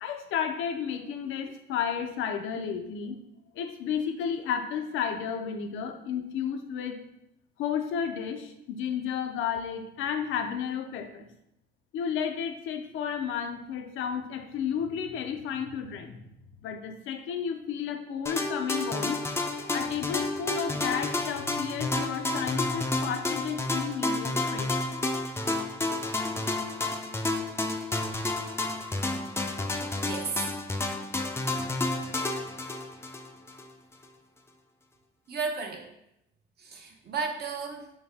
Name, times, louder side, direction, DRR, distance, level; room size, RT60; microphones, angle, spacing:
voice 1, 0.0-3.2 3.5-7.0 7.6-11.3 11.9-16.3 16.6-19.2 19.7-24.9, left 7 dB, 85° left, 6 dB, 0.5 m, -32 dB
sound 1, 18.3-33.7, left 2 dB, 15° left, 0.4 m, -30 dB
voice 2, 30.0-30.5 35.3-35.9 36.6-37.9, right 5 dB, 55° right, 2 dB, 0.8 m, -33 dB
4.3 x 2.7 x 3.4 m, 0.82 s
cardioid pair, 90°, 20 cm